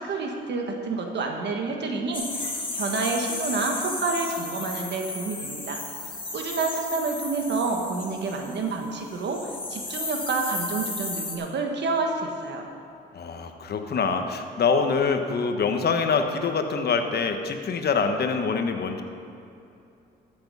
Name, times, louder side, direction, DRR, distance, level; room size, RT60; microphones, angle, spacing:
voice 1, 0.0-5.8 6.3-12.7, right 3 dB, 65° right, 2 dB, 1.4 m, -29 dB
sound 1, 2.1-8.8 9.1-11.4, left 3 dB, 25° left, 2.0 m, -34 dB
voice 2, 13.1-19.0, left 5 dB, 60° left, 6 dB, 1.1 m, -25 dB
13.5 x 7.0 x 5.4 m, 2.7 s
cardioid pair, 75°, 19 cm